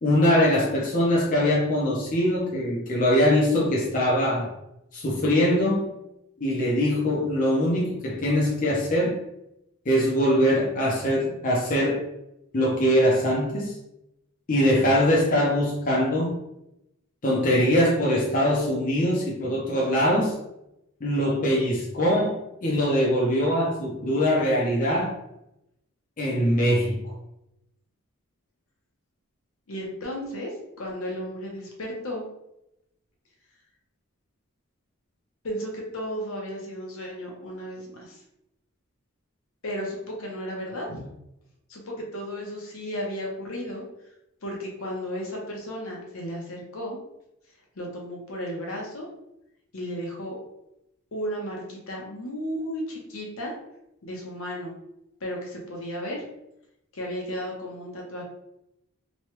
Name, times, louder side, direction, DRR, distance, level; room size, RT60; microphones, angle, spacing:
voice 1, 0.0-4.5 4.9-5.8 6.4-9.2 9.9-12.0 12.5-13.8 14.5-16.4 17.2-20.4 21.0-22.4 22.6-25.1 26.2-27.0, equal, 40° left, -4 dB, 0.6 m, -22 dB
voice 2, 29.7-32.2 35.4-38.2 39.6-41.0 41.7-43.8 44.4-47.0 47.8-49.1 49.7-50.4 51.1-53.5 54.0-54.8 55.2-56.2 56.9-58.2, equal, 70° left, -1 dB, 0.8 m, -34 dB
3.0 x 2.2 x 3.0 m, 0.85 s
head